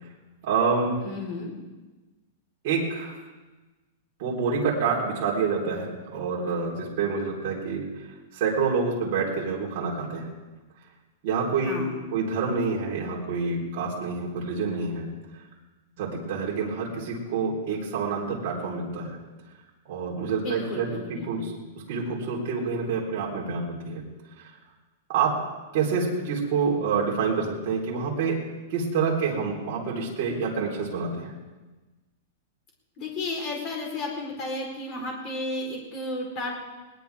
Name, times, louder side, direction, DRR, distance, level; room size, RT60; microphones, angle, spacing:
voice 1, 0.4-1.0 2.6-3.2 4.2-7.9 8.3-10.3 11.2-11.8 12.1-15.1 16.0-19.2 19.9-21.0 21.2-21.5 21.9-24.0 24.4-24.5 25.1-25.3 25.7-28.4 28.7-31.3, right 5 dB, 40° right, -4 dB, 4.1 m, -27 dB
voice 2, 1.0-1.5 11.6-11.9 20.3-21.5 33.0-36.5, left 2 dB, 25° left, 0 dB, 4.1 m, -33 dB
21.0 x 19.5 x 3.6 m, 1.2 s
supercardioid pair, 180°, 0 cm